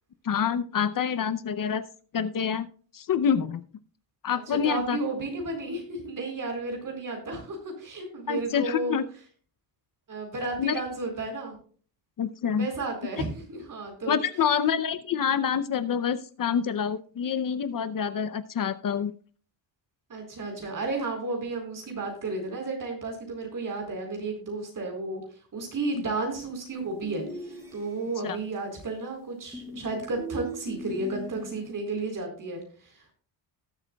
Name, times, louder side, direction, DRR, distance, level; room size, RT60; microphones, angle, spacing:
voice 1, 0.2-1.8 2.1-2.7 2.9-3.6 4.2-5.0 8.3-9.0 10.6-10.8 12.2-12.7 14.1-19.1 28.2-28.4, left 7 dB, 45° left, 12 dB, 0.7 m, -27 dB
voice 2, 4.3-9.0 10.1-11.6 12.5-14.2 20.1-25.2 25.5-33.1, right 3 dB, 45° right, 2 dB, 4.5 m, -33 dB
sound 1, 27.0-28.3 29.5-31.7, equal, 5° right, 4.4 m, -39 dB
19.0 x 7.9 x 2.3 m, 0.42 s
cardioid pair, 140°, 45 cm